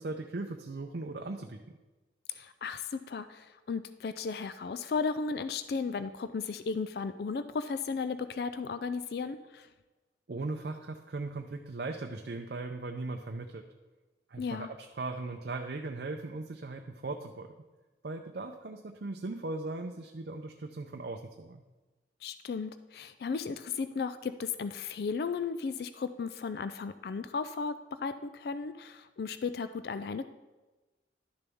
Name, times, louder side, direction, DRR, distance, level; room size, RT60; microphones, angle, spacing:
voice 1, 0.0-1.8 10.3-13.6 14.3-17.5 18.0-21.6, right 3 dB, 60° right, 4 dB, 0.5 m, -38 dB
voice 2, 2.3-9.7 14.4-14.7 22.2-27.7 28.0-30.3, left 5 dB, 55° left, 11 dB, 0.3 m, -35 dB
11.5 x 6.8 x 3.5 m, 1.1 s
head